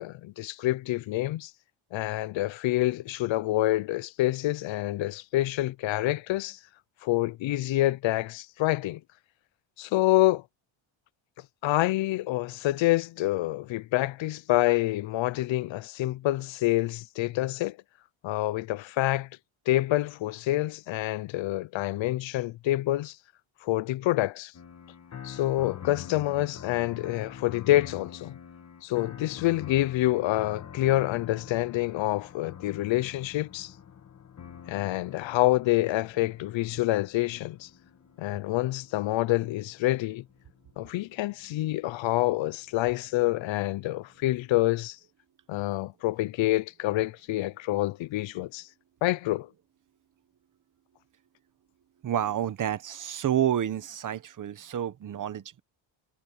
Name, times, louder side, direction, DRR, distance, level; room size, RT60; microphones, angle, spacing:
voice 1, 0.0-1.5 1.9-6.6 7.0-9.0 9.8-10.4 11.6-17.8 18.2-19.3 19.7-23.2 23.6-24.5 25.2-28.3 28.8-33.7 34.7-37.7 38.2-40.2 40.8-45.0 45.5-48.7 49.0-49.5, left 16 dB, 70° left, 0.6 m, -27 dB
sound 1, 24.5-41.7 42.5-44.4, left 8 dB, 35° left, 1.7 m, -46 dB
voice 2, 52.0-55.6, right 10 dB, 40° right, 1.0 m, -29 dB
cardioid pair, 180°, 48 cm